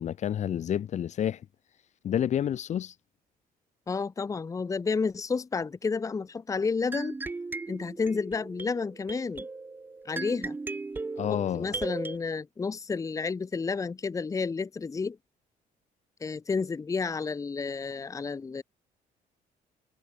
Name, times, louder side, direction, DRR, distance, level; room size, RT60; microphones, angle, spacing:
voice 1, 0.0-1.4 2.0-2.9 11.2-11.8, left 10 dB, 50° left, 1.5 m, -29 dB
voice 2, 3.9-7.2 7.7-9.5 10.0-10.6 11.3-15.2 16.2-18.6, left 4 dB, 20° left, 1.2 m, -31 dB
sound 1, 6.9-12.2, right 3 dB, 15° right, 0.5 m, -37 dB
cardioid pair, 150°, 16 cm